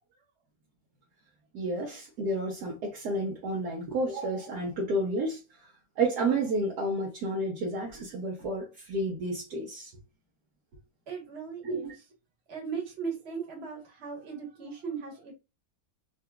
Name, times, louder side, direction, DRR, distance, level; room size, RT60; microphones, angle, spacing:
voice 1, 1.5-9.9 11.6-11.9, right 2 dB, 70° right, 1.3 m, -31 dB
voice 2, 11.1-11.9 12.5-15.3, right 6 dB, 40° right, 1.3 m, -37 dB
3.8 x 2.7 x 2.2 m
omnidirectional pair, 1.8 m